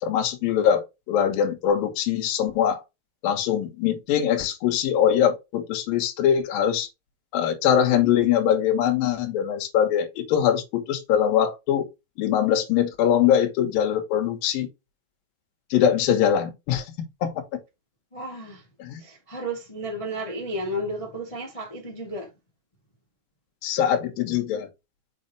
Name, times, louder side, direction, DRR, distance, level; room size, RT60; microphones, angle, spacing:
voice 1, 0.0-2.8 3.2-6.9 7.3-11.8 12.2-14.7 15.7-16.8 17.2-17.3 18.8-19.0 23.6-24.7, left 9 dB, 65° left, 2.9 m, -22 dB
voice 2, 18.1-18.6 19.0-22.3, right 1 dB, 20° left, 0.8 m, -33 dB
6.3 x 5.6 x 3.1 m
omnidirectional pair, 4.7 m